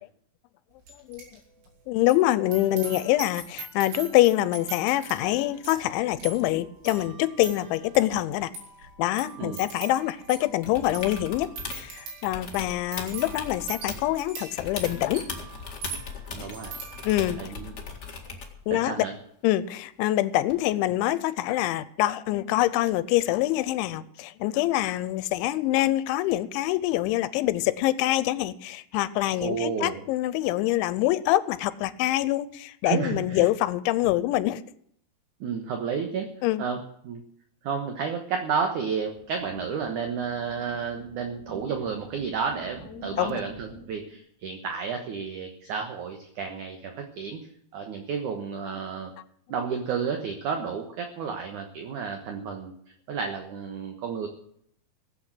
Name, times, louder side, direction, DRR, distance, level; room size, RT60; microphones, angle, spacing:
sound 1, 0.9-1.4 1.6-17.4 17.8-18.2, right 4 dB, 90° right, 6.5 m, -42 dB
voice 1, 1.9-8.5 9.0-15.2 17.0-17.4 18.7-18.9 19.4-34.6 36.4-36.7 43.2-43.4, left 15 dB, 90° left, 16 dB, 3.1 m, -25 dB
sound 2, 10.6-11.9 12.2-14.2 14.6-18.6 20.5-20.6, left 4 dB, 65° left, 1.0 m, -38 dB
voice 2, 16.3-16.8 17.4-17.8 18.7-19.1 29.4-30.0 32.8-33.5 35.4-36.3 36.6-37.2 37.6-49.1 49.5-52.7 53.1-54.3, right 6 dB, 65° right, 5 dB, 2.0 m, -31 dB
sound 3, 39.1-44.2, equal, 10° right, 2.3 m, -47 dB
16.5 x 8.3 x 7.8 m, 0.67 s
omnidirectional pair, 5.3 m